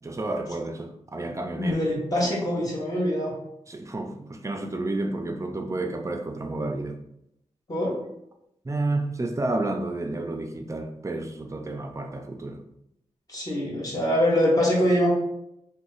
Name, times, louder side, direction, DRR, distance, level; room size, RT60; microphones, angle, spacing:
voice 1, 0.0-1.8 3.7-7.0 8.6-12.6, right 2 dB, 25° right, 0.5 m, -30 dB
voice 2, 1.6-3.3 7.7-7.9 13.3-15.1, equal, 30° left, 1.4 m, -24 dB
2.9 x 2.2 x 3.9 m
cardioid pair, 65°, 12 cm